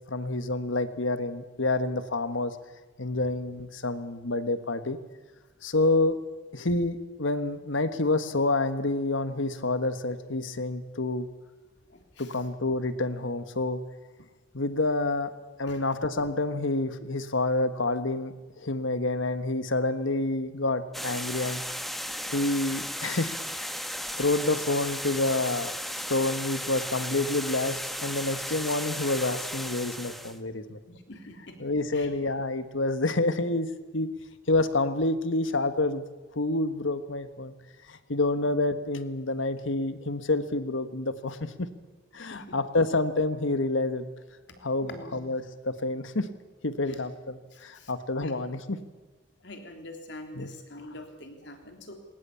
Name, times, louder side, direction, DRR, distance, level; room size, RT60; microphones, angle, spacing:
voice 1, 0.1-2.6 3.0-5.0 5.6-6.2 6.5-11.3 12.2-13.8 14.5-15.3 15.6-21.6 22.3-23.8 24.2-30.8 31.6-33.7 33.9-34.1 34.5-36.0 36.3-37.5 37.9-41.7 42.1-44.1 44.6-46.3 46.6-48.8 50.3-50.5, left 2 dB, 75° left, 11 dB, 1.5 m, -28 dB
voice 2, 11.9-12.3 15.7-15.8 30.9-31.6 31.9-32.1 38.4-38.5 42.2-42.6 44.8-45.1 46.9-47.0 47.5-47.9 48.2-48.4 49.4-51.9, left 1 dB, 60° left, 4 dB, 3.5 m, -45 dB
sound 1, 20.9-30.4, equal, ahead, 1.1 m, -35 dB
21.0 x 19.0 x 8.5 m, 1.2 s
head